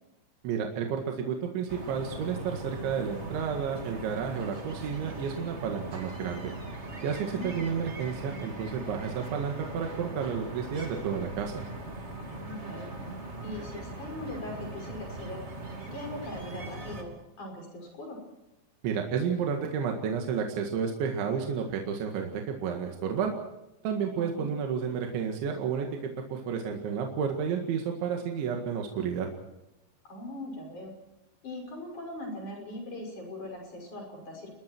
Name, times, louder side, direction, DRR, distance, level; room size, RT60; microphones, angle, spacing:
voice 1, 0.4-6.5 7.0-11.5 18.8-23.3 23.8-25.9 26.3-29.3, right 6 dB, 75° right, 2 dB, 4.3 m, -31 dB
sound 1, 1.7-17.0, right 2 dB, 20° right, 2.1 m, -40 dB
voice 2, 7.2-7.6 12.4-12.9 13.4-15.4 15.9-18.2 24.2-24.5 30.0-31.0 31.4-34.6, left 1 dB, 40° left, 2 dB, 7.2 m, -40 dB
29.5 x 22.0 x 4.6 m, 0.93 s
omnidirectional pair, 5.4 m